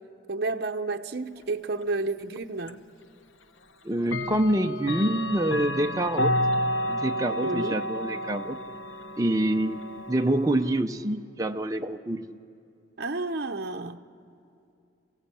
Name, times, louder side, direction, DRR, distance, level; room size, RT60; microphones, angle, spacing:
voice 1, 0.3-2.8 7.4-7.8 13.0-14.0, right 3 dB, 55° right, 0.7 m, -31 dB
Clock, 2.7-2.8 4.0-10.8, left 1 dB, 80° left, 1.0 m, -31 dB
voice 2, 3.8-6.3 6.9-8.6 9.2-9.8 10.1-12.3, right 1 dB, 15° right, 0.6 m, -26 dB
28.0 x 16.5 x 8.4 m
head